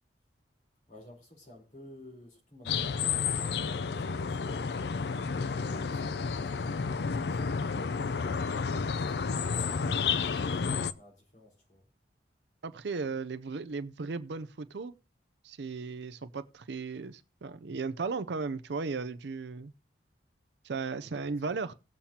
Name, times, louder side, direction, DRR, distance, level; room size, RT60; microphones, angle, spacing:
voice 1, 0.9-5.0 5.4-7.9 9.0-11.8 21.0-21.6, left 1 dB, 45° left, 3.6 m, -54 dB
sound 1, 2.7-10.9, left 5 dB, 60° left, 0.4 m, -31 dB
voice 2, 12.6-14.9 15.4-19.7 20.6-21.7, right 4 dB, 70° right, 0.5 m, -36 dB
19.0 x 7.2 x 2.8 m
head